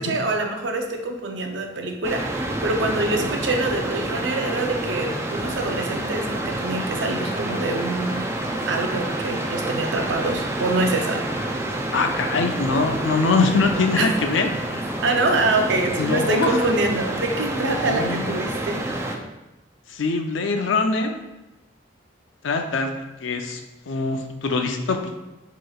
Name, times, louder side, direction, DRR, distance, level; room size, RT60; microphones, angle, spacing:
voice 1, 0.0-8.3 8.7-11.2 14.0-14.1 15.0-18.9, right 2 dB, 65° right, 3 dB, 0.6 m, -25 dB
sound 1, 2.0-19.2, right 1 dB, 15° right, 0.4 m, -28 dB
voice 2, 11.9-14.8 16.0-16.6 17.9-18.3 19.9-21.2 22.4-22.9 23.2-23.6 23.9-25.2, left 3 dB, 80° left, 5 dB, 0.5 m, -23 dB
7.5 x 3.0 x 2.3 m, 1.0 s
head